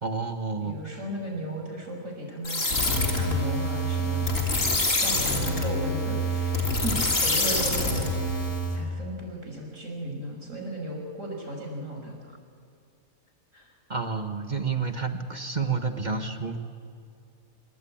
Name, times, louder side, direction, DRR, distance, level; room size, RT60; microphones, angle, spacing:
voice 1, 0.0-1.0 13.9-16.6, right 4 dB, 30° right, 6 dB, 1.6 m, -30 dB
voice 2, 0.6-2.6 3.2-4.2 4.9-12.1 13.5-13.7, right 1 dB, 60° right, 1 dB, 6.7 m, -35 dB
sound 1, 2.4-8.8, left 1 dB, 60° left, 3.6 m, -26 dB
27.0 x 23.5 x 8.8 m, 2.3 s
omnidirectional pair, 1.6 m